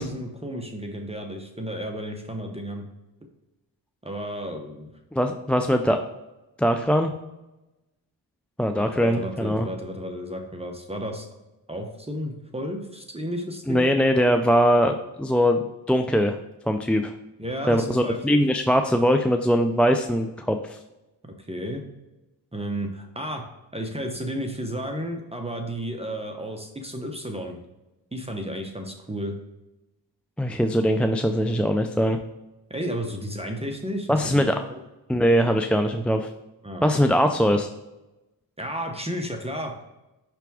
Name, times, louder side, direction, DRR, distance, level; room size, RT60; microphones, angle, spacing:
voice 1, 0.0-2.8 4.0-4.9 8.8-11.3 11.7-13.9 17.4-18.4 21.2-21.8 22.5-23.4 23.7-27.6 28.1-29.3 32.7-34.8 36.6-37.1 38.6-39.7, equal, 15° right, 3 dB, 0.9 m, -32 dB
voice 2, 5.1-6.0 6.6-7.1 8.6-9.7 13.7-15.6 15.9-16.4 16.7-17.1 17.7-20.8 30.4-32.2 34.1-34.5 35.1-36.3 36.8-37.7, equal, 5° left, 5 dB, 0.3 m, -21 dB
5.8 x 3.5 x 4.7 m, 0.99 s
cardioid pair, 55°, 43 cm